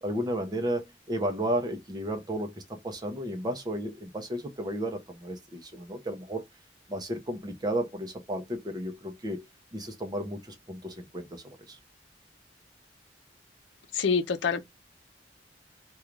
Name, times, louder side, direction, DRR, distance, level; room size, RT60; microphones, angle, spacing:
voice 1, 0.0-6.4 6.9-9.4 9.7-11.8, right 1 dB, 25° right, 0.6 m, -33 dB
voice 2, 13.9-14.6, left 5 dB, 80° left, 0.5 m, -26 dB
2.4 x 2.3 x 3.0 m
head